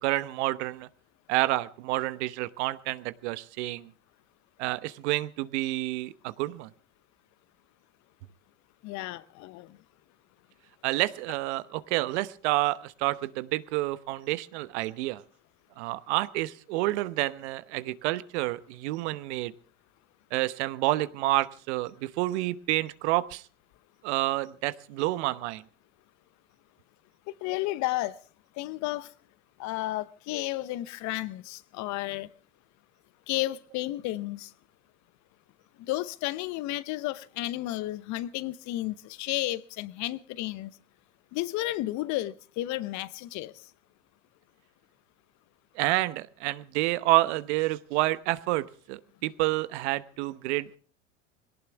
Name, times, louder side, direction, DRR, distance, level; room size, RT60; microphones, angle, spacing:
voice 1, 0.0-0.9 1.3-3.9 4.6-6.7 10.8-15.2 15.8-19.5 20.3-23.4 24.0-25.6 45.7-50.8, right 18 dB, 65° right, 1.0 m, -29 dB
voice 2, 8.8-9.8 27.4-28.2 28.6-29.1 29.6-32.3 33.3-34.5 35.8-40.7 41.3-43.5, left 16 dB, 50° left, 0.9 m, -32 dB
21.5 x 18.0 x 3.4 m
hypercardioid pair, 85°, 36 cm